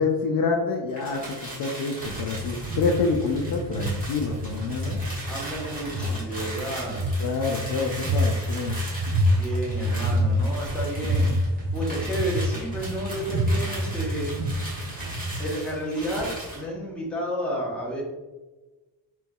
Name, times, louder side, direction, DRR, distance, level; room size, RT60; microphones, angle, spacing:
voice 1, 0.0-5.0 7.2-8.7, left 4 dB, 55° left, 1 dB, 0.5 m, -27 dB
sound 1, 0.9-16.7, right 1 dB, 20° right, 1.4 m, -38 dB
sound 2, 2.0-15.5, equal, 55° right, 0.8 m, -28 dB
voice 2, 5.3-7.1 9.3-11.3 11.7-14.4 15.4-18.0, equal, ahead, -5 dB, 0.9 m, -31 dB
4.4 x 3.8 x 2.3 m, 1.2 s
cardioid pair, 155°, 43 cm